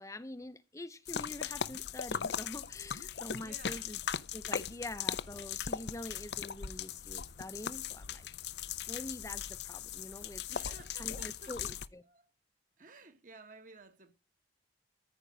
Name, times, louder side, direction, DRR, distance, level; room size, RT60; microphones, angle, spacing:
voice 1, 0.0-4.0 4.3-8.3 8.9-12.0, left 1 dB, 15° left, 0.6 m, -45 dB
sound 1, 1.1-11.9, left 8 dB, 65° left, 0.6 m, -39 dB
voice 2, 3.4-3.9 10.5-11.7 12.0-12.3 12.8-14.1, right 3 dB, 45° right, 1.4 m, -54 dB
14.0 x 5.2 x 9.0 m
head